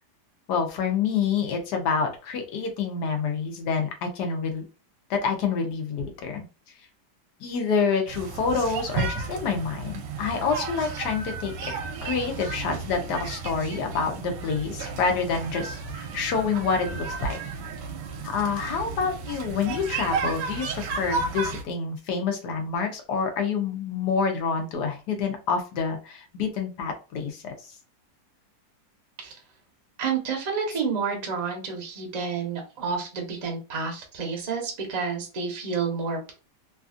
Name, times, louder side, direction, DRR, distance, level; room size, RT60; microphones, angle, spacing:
voice 1, 0.5-4.6 5.1-6.4 7.4-11.5 12.0-17.4 18.2-27.5 30.7-30.8, left 5 dB, 75° left, 4 dB, 1.2 m, -27 dB
sound 1, 8.1-21.6, right 4 dB, 85° right, 1.2 m, -33 dB
voice 2, 30.0-36.3, right 5 dB, 35° right, 1 dB, 0.7 m, -30 dB
3.2 x 2.4 x 2.4 m, 0.32 s
omnidirectional pair, 1.8 m